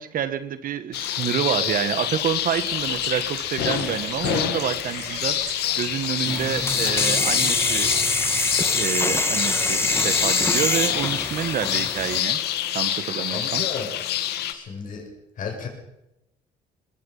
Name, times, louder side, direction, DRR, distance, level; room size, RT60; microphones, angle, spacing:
voice 1, 0.0-7.9 8.4-8.5 8.7-12.4 12.7-13.6, right 9 dB, 55° right, 11 dB, 1.6 m, -28 dB
sound 1, 0.9-14.5, left 12 dB, 80° left, 1.9 m, -27 dB
Bird, 2.3-8.4, right 7 dB, 80° right, 7.7 m, -40 dB
sound 2, 6.3-12.2, left 2 dB, 15° left, 2.1 m, -24 dB
voice 2, 13.2-13.9 14.5-15.1 15.4-15.7, left 5 dB, 50° left, 1 dB, 7.2 m, -33 dB
22.5 x 21.5 x 5.6 m, 0.88 s
cardioid pair, 110°, 17 cm